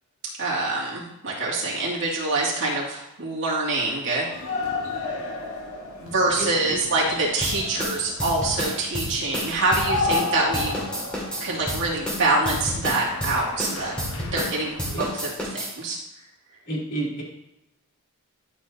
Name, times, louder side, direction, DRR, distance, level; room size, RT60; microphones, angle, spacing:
voice 1, 0.4-4.3 6.0-10.7 11.4-16.0, right 2 dB, 55° right, -5 dB, 2.4 m, -25 dB
sound 1, 4.3-15.1, left 3 dB, 65° left, 1.2 m, -33 dB
sound 2, 7.4-10.3 10.5-14.5 14.8-15.7, equal, 5° left, 2.3 m, -30 dB
voice 2, 16.7-17.2, right 2 dB, 50° left, -5 dB, 3.1 m, -30 dB
12.0 x 5.6 x 2.8 m, 0.88 s
head